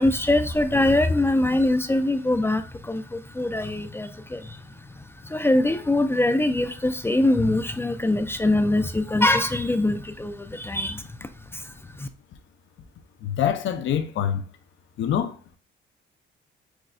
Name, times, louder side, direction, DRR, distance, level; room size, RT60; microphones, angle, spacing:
voice 1, 0.0-4.6 5.0-12.1, left 1 dB, 10° left, 0.4 m, -23 dB
voice 2, 13.2-14.4 15.0-15.3, left 9 dB, 75° left, 0.6 m, -25 dB
6.1 x 2.3 x 2.6 m
cardioid pair, 90°, 20 cm